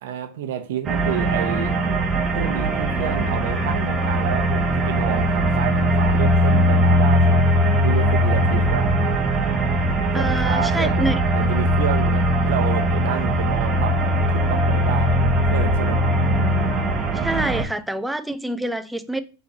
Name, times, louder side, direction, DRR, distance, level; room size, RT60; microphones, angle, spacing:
voice 1, 0.0-1.7 2.3-7.5 7.7-8.9 10.1-14.0 14.3-16.0, right 9 dB, 70° right, 0.6 m, -29 dB
sound 1, 0.8-17.6, equal, 30° right, 0.7 m, -20 dB
voice 2, 10.1-11.2 17.1-19.2, right 1 dB, 5° right, 0.3 m, -26 dB
4.0 x 3.0 x 2.8 m
hypercardioid pair, 105°, 0 cm